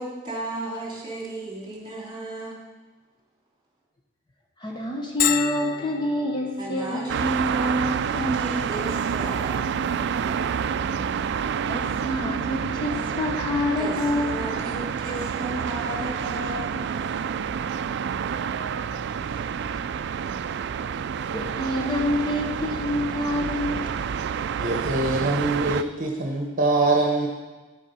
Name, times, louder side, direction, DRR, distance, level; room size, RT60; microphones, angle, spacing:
voice 1, 0.0-2.6 6.6-9.6 13.8-16.7, right 1 dB, 25° right, -3 dB, 3.1 m, -32 dB
voice 2, 4.6-7.0 11.7-14.4 21.3-23.9, left 1 dB, 25° left, 0 dB, 1.0 m, -27 dB
Bell, 5.2-20.6, left 9 dB, 50° left, 0.4 m, -38 dB
sound 1, 7.1-25.8, right 7 dB, 60° right, 0.4 m, -28 dB
voice 3, 24.6-27.3, right 2 dB, 45° right, 0 dB, 1.1 m, -23 dB
11.0 x 7.3 x 5.4 m, 1.2 s
head